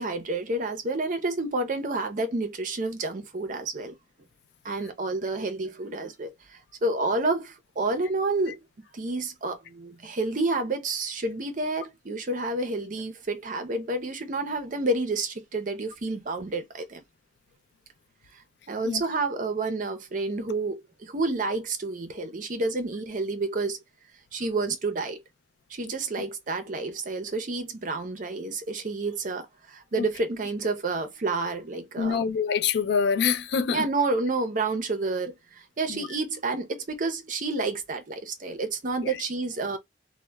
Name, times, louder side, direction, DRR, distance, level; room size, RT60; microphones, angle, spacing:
voice 1, 0.0-3.9 4.6-8.6 8.9-17.0 18.3-18.4 18.7-23.8 24.3-25.2 25.7-32.2 33.7-39.8, right 3 dB, 45° right, 0.5 m, -29 dB
voice 2, 32.0-33.9 35.9-36.1 39.0-39.2, left 6 dB, 65° left, 0.3 m, -26 dB
2.8 x 2.0 x 2.2 m
head